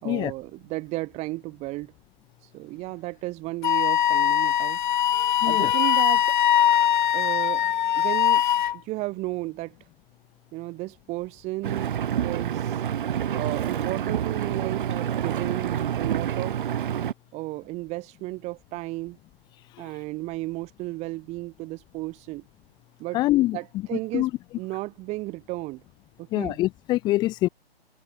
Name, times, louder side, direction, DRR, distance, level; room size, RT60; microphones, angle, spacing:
voice 1, 0.0-1.9 2.4-4.8 5.1-6.4 7.1-8.4 8.7-9.8 10.5-12.8 13.3-16.7 17.3-19.2 19.8-22.4 23.0-23.2 23.5-24.3 24.6-25.8 26.2-26.6, right 21 dB, 20° right, 3.9 m, -34 dB
Wind instrument woodwind instrument, 3.6-8.8, left 10 dB, 50° left, 0.5 m, -21 dB
voice 2, 5.4-5.7 23.1-23.6 23.9-24.3 26.3-27.5, left 17 dB, 15° left, 1.0 m, -24 dB
Engine, 11.6-17.1, right 9 dB, 55° right, 1.2 m, -28 dB
hypercardioid pair, 150°, 31 cm